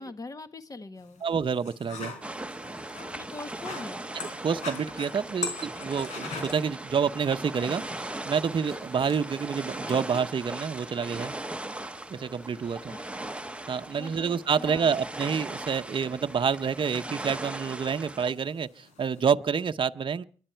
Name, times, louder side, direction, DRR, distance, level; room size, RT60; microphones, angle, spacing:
voice 1, 0.0-1.2 3.0-4.0 12.9-13.0 14.0-15.0, left 3 dB, 30° left, 1.5 m, -42 dB
sound 1, 1.0-19.2, left 4 dB, 85° left, 4.2 m, -45 dB
voice 2, 1.2-2.1 4.4-11.3 12.1-12.9 13.7-20.2, right 6 dB, 45° right, 0.8 m, -28 dB
sound 2, 2.2-18.3, right 1 dB, 10° right, 1.0 m, -39 dB
23.5 x 11.5 x 4.5 m
cardioid pair, 65°, 12 cm